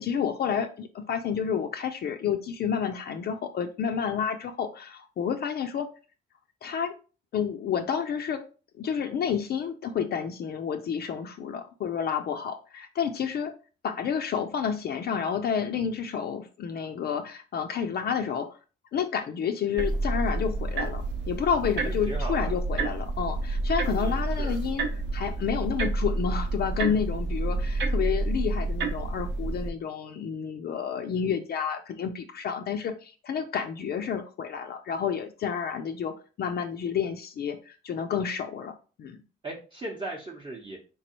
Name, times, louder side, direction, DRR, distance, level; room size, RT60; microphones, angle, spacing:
voice 1, 0.0-5.9 6.6-6.9 7.3-8.4 8.8-13.5 13.8-18.6 18.9-38.7 39.0-39.2, left 7 dB, 55° left, 5 dB, 0.4 m, -30 dB
sound 1, 19.8-29.7, right 2 dB, 65° right, 0.8 m, -29 dB
voice 2, 21.8-22.6 23.9-24.6 39.4-40.8, right 2 dB, 25° right, -2 dB, 0.7 m, -38 dB
3.6 x 3.0 x 2.9 m, 0.36 s
cardioid pair, 90°, 20 cm